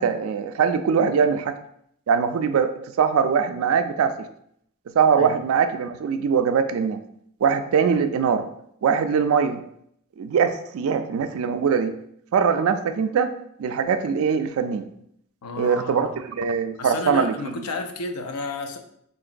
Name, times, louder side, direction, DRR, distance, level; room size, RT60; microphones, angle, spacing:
voice 1, 0.0-1.5 2.1-4.3 4.9-7.0 7.4-8.5 8.8-9.6 10.2-12.0 12.3-13.3 13.6-14.9 15.6-17.5, right 6 dB, 70° right, 10 dB, 0.3 m, -22 dB
voice 2, 15.4-16.1 16.8-18.8, left 3 dB, 85° left, 5 dB, 0.5 m, -31 dB
3.8 x 2.9 x 2.5 m, 0.70 s
head